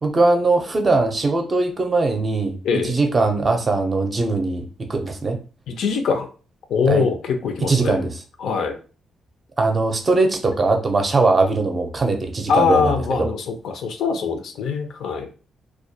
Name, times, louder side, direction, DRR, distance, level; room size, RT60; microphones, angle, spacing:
voice 1, 0.0-2.6 2.8-5.4 6.9-7.0 7.7-8.1 9.6-12.9 13.2-13.3, right 3 dB, 35° right, 4 dB, 0.5 m, -20 dB
voice 2, 5.7-6.3 6.7-8.0 8.4-8.8 12.5-15.3, left 5 dB, 75° left, 6 dB, 0.4 m, -22 dB
2.2 x 2.1 x 2.7 m, 0.36 s
cardioid pair, 95°, 0 cm